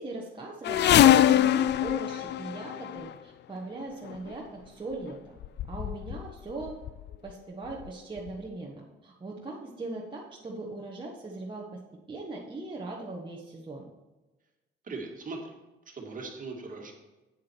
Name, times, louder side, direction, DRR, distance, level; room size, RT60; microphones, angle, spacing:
voice 1, 0.0-5.3 5.7-6.8 7.2-11.8 12.1-13.8, right 2 dB, 25° right, -3 dB, 1.5 m, -39 dB
sound 1, 0.6-3.1 4.1-4.3 5.1-5.2 5.4-6.3 6.6-7.1 7.8-7.9 8.3-8.4, left 12 dB, 60° left, 0.4 m, -23 dB
voice 2, 14.8-15.5 15.9-16.9, right 3 dB, 40° right, 1 dB, 2.1 m, -39 dB
8.6 x 7.6 x 4.6 m, 1.1 s
cardioid pair, 90°, 20 cm